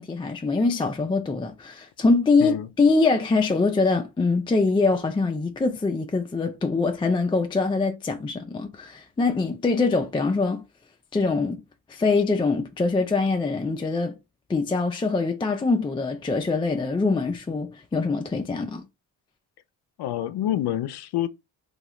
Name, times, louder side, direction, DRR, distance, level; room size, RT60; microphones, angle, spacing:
voice 1, 0.0-10.6 11.1-11.6 11.9-14.1 14.5-18.8, left 3 dB, 15° left, 0.3 m, -23 dB
voice 2, 20.0-21.3, left 12 dB, 65° left, 0.5 m, -27 dB
2.8 x 2.3 x 3.0 m
cardioid pair, 70°, 43 cm